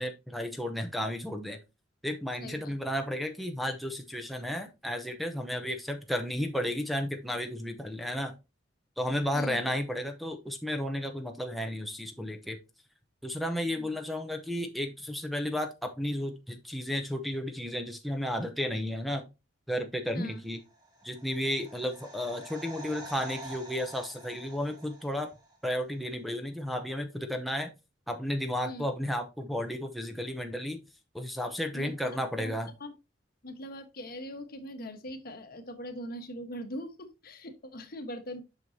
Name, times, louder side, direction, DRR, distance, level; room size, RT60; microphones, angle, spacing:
voice 1, 0.0-1.6 2.0-8.3 9.0-12.6 13.2-19.2 19.7-20.6 21.0-25.3 25.6-27.7 28.1-30.8 31.1-32.7, left 1 dB, ahead, 3 dB, 0.8 m, -33 dB
voice 2, 2.4-2.8 9.3-9.7 13.8-14.0 20.1-20.4 28.6-28.8 31.7-32.5 32.8-32.9 33.4-38.4, equal, 55° left, 7 dB, 1.3 m, -41 dB
sound 1, 20.7-25.6 25.8-25.9, right 1 dB, 20° right, 2.3 m, -47 dB
7.8 x 6.2 x 2.7 m, 0.25 s
head